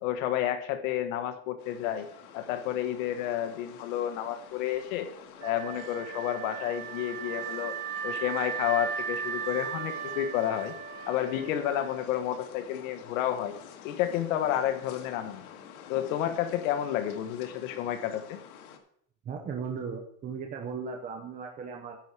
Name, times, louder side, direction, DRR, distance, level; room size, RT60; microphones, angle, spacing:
voice 1, 0.0-2.1 2.3-5.1 5.4-7.7 8.0-10.7 11.1-13.5 13.8-15.4 15.9-18.4, left 11 dB, 65° left, 8 dB, 1.3 m, -30 dB
sound 1, 1.6-18.8, left 8 dB, 90° left, 1.7 m, -49 dB
Wind instrument woodwind instrument, 5.4-12.4, right 8 dB, 65° right, 1.4 m, -37 dB
voice 2, 19.2-22.0, right 5 dB, 20° right, 2 dB, 0.8 m, -37 dB
10.5 x 4.8 x 7.2 m, 0.68 s
supercardioid pair, 155°, 42 cm